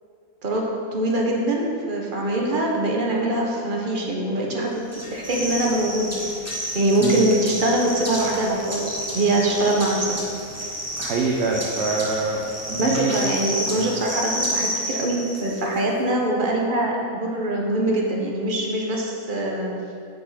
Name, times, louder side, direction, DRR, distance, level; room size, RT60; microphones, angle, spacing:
voice 1, 0.9-4.7 5.1-6.1 6.7-10.2 12.8-19.7, right 1 dB, 35° right, -1 dB, 1.2 m, -23 dB
sound 1, 4.9-15.8, equal, 10° right, 1.1 m, -30 dB
voice 2, 11.0-12.4 12.7-13.2 13.7-13.9, right 4 dB, 55° right, -1 dB, 0.9 m, -24 dB
7.6 x 5.4 x 5.8 m, 2.4 s
omnidirectional pair, 1.5 m